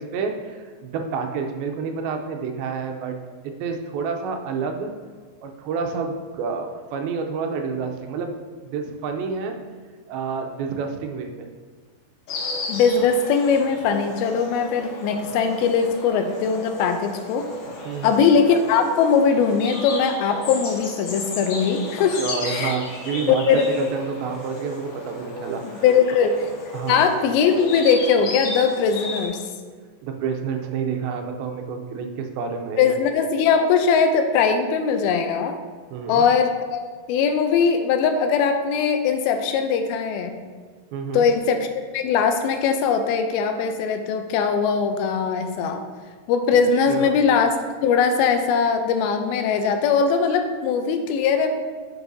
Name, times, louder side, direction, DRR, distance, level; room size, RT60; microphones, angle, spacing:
voice 1, 0.0-3.2 3.4-4.9 5.4-8.4 8.6-9.6 10.1-11.5 17.9-18.2 22.2-25.8 26.7-27.0 30.0-32.9 35.9-36.3 40.9-41.3 46.9-47.2, right 5 dB, 85° right, 4 dB, 2.5 m, -29 dB
Insect, 12.3-29.3, left 2 dB, 65° left, 2.1 m, -34 dB
voice 2, 12.7-17.5 18.0-22.8 23.3-23.7 25.8-26.4 26.9-29.4 32.8-35.6 36.1-36.8 37.1-40.4 41.1-41.7 41.9-45.9 46.3-47.6 47.8-51.6, left 6 dB, 90° left, 6 dB, 2.5 m, -20 dB
9.4 x 5.9 x 2.7 m, 1.5 s
omnidirectional pair, 4.3 m